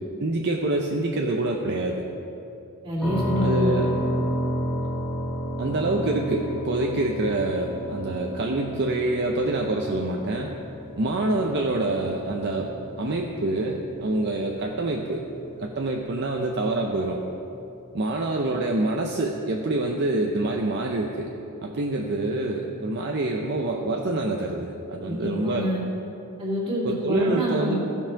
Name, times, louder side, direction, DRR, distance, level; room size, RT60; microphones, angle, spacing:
voice 1, 0.2-2.0 3.4-3.9 5.6-10.5 11.0-12.7 13.0-15.3 15.6-17.2 17.9-21.3 21.6-25.7 26.8-27.8, right 2 dB, 50° right, 1 dB, 0.6 m, -26 dB
voice 2, 2.8-3.8 25.0-25.8 26.4-27.8, equal, 25° right, -6 dB, 2.7 m, -27 dB
sound 1, 3.0-16.7, equal, 5° left, 1.9 m, -32 dB
15.5 x 5.5 x 5.7 m, 2.9 s
head